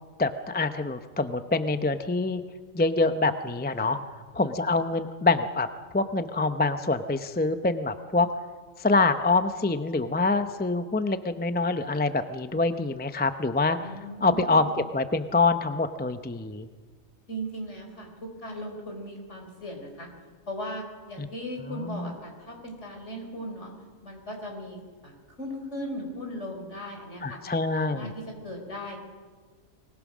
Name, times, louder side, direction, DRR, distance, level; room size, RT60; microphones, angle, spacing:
voice 1, 0.2-2.4 2.7-4.0 4.3-5.7 5.9-8.3 8.8-13.9 14.2-16.7 21.2-21.3 21.7-22.1 27.2-28.1, left 3 dB, 10° left, 9 dB, 0.5 m, -25 dB
voice 2, 13.8-14.6 17.3-20.1 20.5-23.7 24.0-27.4 27.7-29.0, equal, 55° left, 2 dB, 4.9 m, -38 dB
24.5 x 20.0 x 6.2 m, 1.5 s
omnidirectional pair, 1.4 m